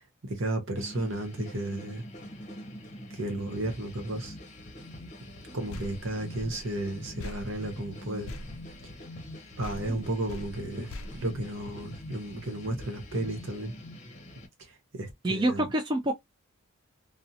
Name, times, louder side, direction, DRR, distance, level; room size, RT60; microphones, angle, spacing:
voice 1, 0.0-2.1 3.1-4.4 5.5-8.3 8.8-8.9 9.6-13.7 14.6-15.7, right 1 dB, 65° right, 0.9 m, -33 dB
sound 1, 0.8-14.5, left 1 dB, 35° left, 0.7 m, -45 dB
sound 2, 5.7-9.3 9.6-12.1, left 2 dB, 75° left, 0.4 m, -44 dB
voice 2, 15.2-16.1, right 1 dB, 20° right, 0.4 m, -27 dB
2.6 x 2.0 x 2.7 m
head